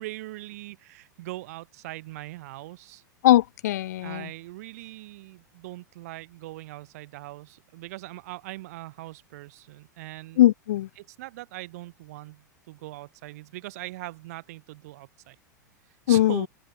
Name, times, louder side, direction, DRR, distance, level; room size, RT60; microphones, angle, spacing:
voice 1, 0.0-3.0 4.0-10.4 11.0-15.4 16.1-16.5, right 18 dB, 55° right, 1.3 m, -41 dB
voice 2, 3.2-4.3 10.4-10.9 16.1-16.5, left 14 dB, 60° left, 0.4 m, -20 dB
open air
figure-of-eight pair, 90°, 10 cm